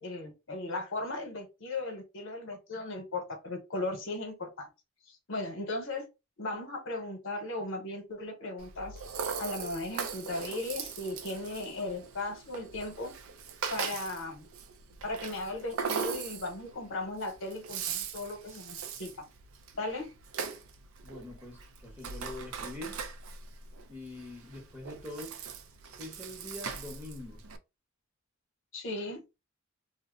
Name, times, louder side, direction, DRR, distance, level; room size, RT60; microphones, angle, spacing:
voice 1, 0.0-4.7 5.1-6.1 6.4-9.0 9.4-13.1 13.7-14.5 15.0-19.1 19.7-20.1 28.7-29.2, left 2 dB, 65° left, 0.9 m, -37 dB
Rattle (instrument), 8.6-27.6, right 6 dB, 80° right, 0.4 m, -40 dB
voice 2, 21.0-23.0 23.9-25.4 26.0-27.4, left 2 dB, 10° right, 0.8 m, -44 dB
2.6 x 2.1 x 3.6 m
head